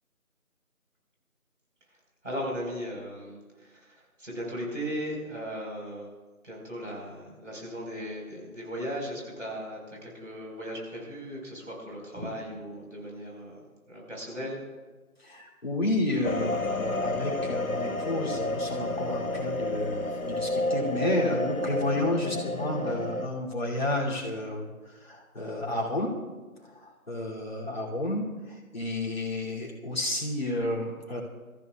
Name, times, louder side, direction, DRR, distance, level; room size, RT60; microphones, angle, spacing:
voice 1, 2.2-6.1 6.4-13.6 13.9-14.6, equal, 55° right, -2 dB, 4.6 m, -37 dB
voice 2, 15.2-26.2 26.7-31.2, left 1 dB, 45° left, -2 dB, 2.8 m, -31 dB
sound 1, 16.2-23.3, left 1 dB, 70° left, 1.1 m, -30 dB
26.5 x 14.0 x 2.4 m, 1.3 s
figure-of-eight pair, 165°, 43 cm